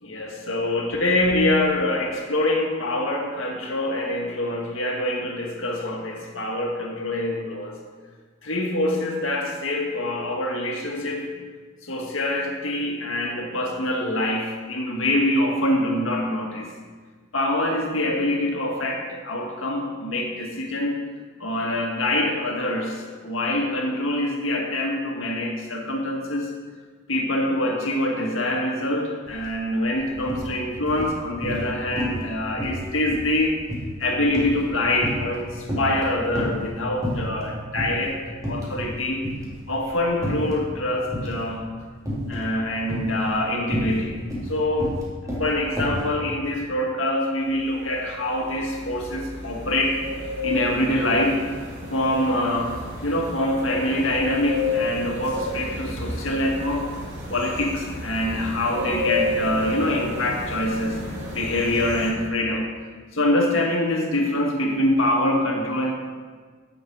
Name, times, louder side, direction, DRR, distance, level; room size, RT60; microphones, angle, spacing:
voice 1, 0.0-7.8 8.4-11.4 11.8-16.7 17.3-21.0 21.4-26.5 27.1-33.6 34.0-39.3 39.7-41.7 42.3-45.0 45.4-50.0 50.4-51.5 51.9-56.9 57.3-61.0 61.3-62.7 63.1-65.9, left 1 dB, 70° left, 1 dB, 2.0 m, -25 dB
sound 1, 29.3-29.5 29.8-30.5 30.9-31.7 32.0-32.3 32.6-35.4 35.7-36.6 37.0-37.4 37.8-38.0 38.4-38.9 39.2-40.6 41.1-41.5 42.1-42.5 42.8-46.1, equal, 20° right, 3.3 m, -29 dB
sound 2, 47.4-62.1, left 1 dB, 60° right, 3.2 m, -32 dB
16.5 x 7.2 x 4.8 m, 1.5 s
head